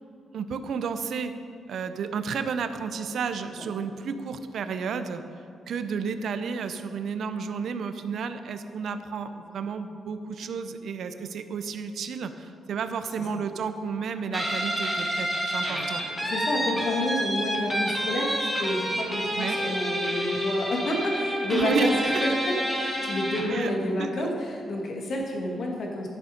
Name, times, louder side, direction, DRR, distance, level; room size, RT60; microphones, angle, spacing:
voice 1, 0.3-1.3 1.7-5.2 5.7-16.0 19.4-19.6 21.5-22.2 23.5-23.7 24.0-24.3, right 5 dB, 70° right, 9 dB, 0.6 m, -31 dB
Guitar, 14.3-23.6, equal, 10° left, 2.1 m, -29 dB
voice 2, 16.1-26.1, left 1 dB, 60° left, 0 dB, 1.9 m, -29 dB
11.0 x 6.9 x 5.2 m, 2.6 s
cardioid pair, 95°, 0 cm